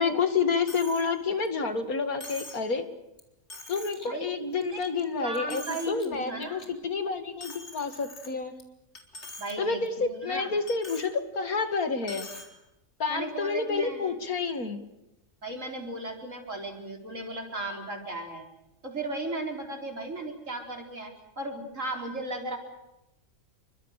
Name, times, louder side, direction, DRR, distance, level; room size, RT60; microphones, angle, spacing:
voice 1, 0.0-2.9 3.7-8.5 9.6-12.3 13.0-14.8, left 4 dB, 80° left, 8 dB, 2.8 m, -29 dB
Coin (dropping), 0.7-1.1 1.5-1.6 2.2-2.7 3.2-3.3 3.5-4.1 4.5-5.0 5.3-6.1 6.4-6.7 7.4-8.6 9.0-9.5 9.9-10.0 10.7-11.1 12.0-12.5, left 2 dB, 50° left, 4.1 m, -43 dB
voice 2, 5.2-6.7 9.4-10.5 13.1-14.1 15.4-18.5 18.8-22.6, right 2 dB, 60° right, 3 dB, 5.0 m, -36 dB
29.5 x 24.0 x 6.7 m, 0.89 s
omnidirectional pair, 1.5 m